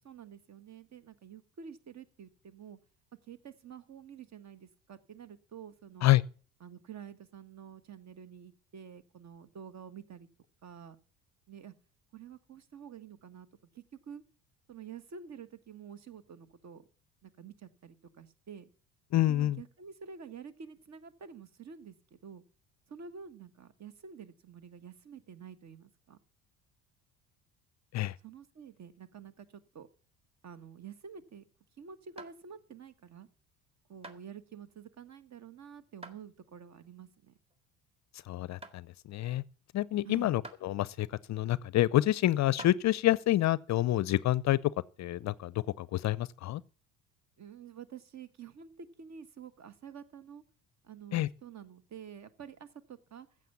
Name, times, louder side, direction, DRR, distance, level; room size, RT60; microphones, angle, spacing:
voice 1, 0.0-2.8 3.3-6.1 6.6-10.3 10.6-11.0 11.5-11.7 12.1-13.5 13.7-14.2 14.7-16.8 17.2-18.7 19.3-22.4 22.9-26.2 28.2-29.9 30.4-31.4 31.8-33.3 33.9-37.3 40.0-40.4 47.4-50.4 50.8-53.3, right 7 dB, 40° right, 1.6 m, -49 dB
voice 2, 19.1-19.6 27.9-28.1 38.3-39.4 39.7-44.7 45.0-46.6 51.1-51.3, left 15 dB, 40° left, 0.6 m, -28 dB
sound 1, 30.3-31.5 32.2-32.7 33.3-33.5 34.0-34.3 34.9-35.4 36.0-36.2 36.7-36.8 37.5-37.6 38.1-38.3 38.6-38.9 39.5-39.6 40.4-40.6 41.5-41.6 42.4-42.8, right 2 dB, 15° right, 2.0 m, -49 dB
15.0 x 7.4 x 7.1 m
hypercardioid pair, 60°, 41 cm